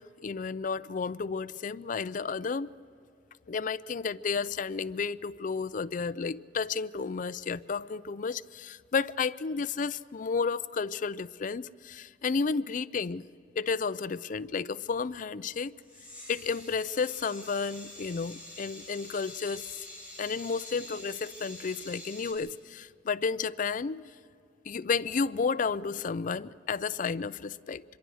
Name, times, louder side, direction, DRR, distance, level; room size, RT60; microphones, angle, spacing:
voice 1, 0.0-2.7 3.5-13.2 13.6-15.7 16.3-19.9 20.2-24.0 24.6-27.8, left 5 dB, 45° left, 0.4 m, -32 dB
sound 1, 15.8-22.3, left 1 dB, 10° right, 7.9 m, -47 dB
25.5 x 22.5 x 6.3 m
head